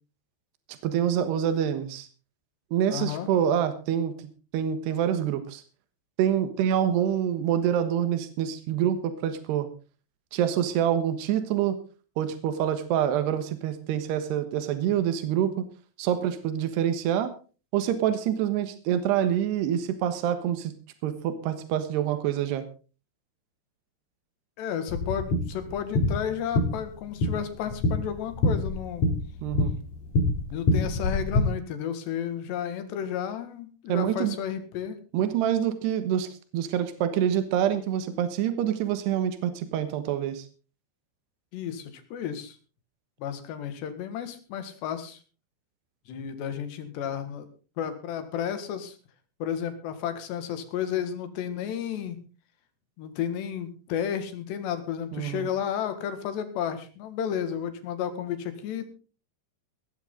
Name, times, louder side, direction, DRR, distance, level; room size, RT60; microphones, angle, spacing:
voice 1, 0.8-2.1 2.7-4.1 4.5-5.6 6.2-9.7 10.3-11.8 12.2-15.7 16.0-17.3 17.7-20.7 21.0-22.6 29.4-29.7 33.9-34.3 35.1-40.5 55.1-55.5, right 10 dB, 80° right, 10 dB, 3.4 m, -26 dB
voice 2, 2.9-3.3 24.6-29.0 30.5-35.0 41.5-42.6 43.2-45.2 46.1-47.5 47.8-49.0 49.4-52.2 53.0-58.9, left 9 dB, 90° left, 10 dB, 4.1 m, -32 dB
sound 1, 24.9-31.4, left 2 dB, 45° left, 4.4 m, -26 dB
18.0 x 13.5 x 3.8 m, 0.36 s
omnidirectional pair, 4.8 m